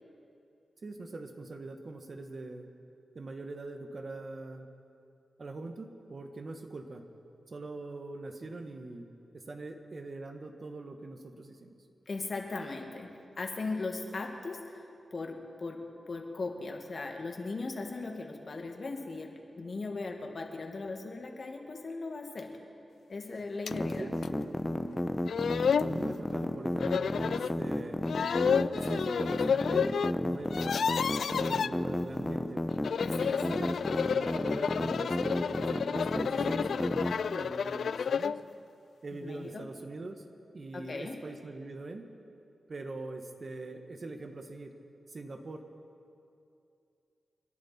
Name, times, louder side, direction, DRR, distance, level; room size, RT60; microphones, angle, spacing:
voice 1, 0.8-2.7 3.1-4.7 5.4-7.0 7.5-9.1 9.3-11.8 23.8-24.1 25.8-28.0 28.7-30.8 31.3-32.6 33.4-38.3 39.0-40.2 40.5-42.0 42.7-44.7 45.1-45.7, right 2 dB, 50° right, 5 dB, 1.4 m, -42 dB
voice 2, 12.1-15.8 16.1-22.5 23.1-24.1 33.0-33.4 39.2-39.7 40.7-41.2, left 3 dB, 55° left, 2 dB, 2.1 m, -38 dB
sound 1, 23.7-23.8 24.2-24.3 25.0-25.1 25.3-25.9 26.8-27.5 28.1-30.1 30.4-31.7 32.7-38.4, left 6 dB, 80° left, 0.3 m, -30 dB
sound 2, 23.7-37.1, left 1 dB, 15° left, 1.0 m, -32 dB
29.5 x 10.5 x 4.4 m, 2.6 s
cardioid pair, 60°, 0 cm